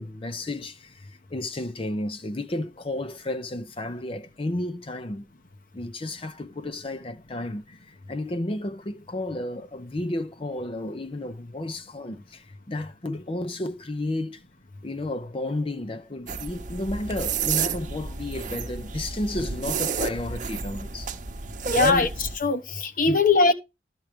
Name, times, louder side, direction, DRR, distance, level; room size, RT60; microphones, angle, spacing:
voice 1, 0.0-5.3 5.7-14.4 14.8-21.1 21.7-22.1 23.1-23.2, left 1 dB, 30° left, 0.6 m, -32 dB
sound 1, 16.3-22.4, right 4 dB, 45° right, 0.9 m, -30 dB
voice 2, 21.7-23.5, left 3 dB, 50° left, 1.0 m, -21 dB
12.5 x 4.6 x 5.0 m
head